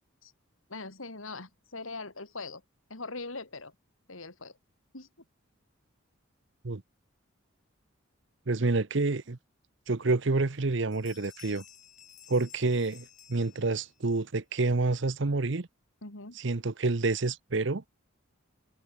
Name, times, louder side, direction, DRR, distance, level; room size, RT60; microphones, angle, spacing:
voice 1, 0.7-2.6 2.9-3.7 4.1-4.6 4.9-5.1 16.0-16.4, left 3 dB, 80° left, 4.0 m, -41 dB
voice 2, 8.5-9.4 9.9-11.6 12.3-15.7 16.4-17.8, right 3 dB, 60° right, 0.9 m, -28 dB
Bell, 9.9-10.0 10.4-10.7 10.9-14.1, left 10 dB, 35° left, 3.8 m, -54 dB
head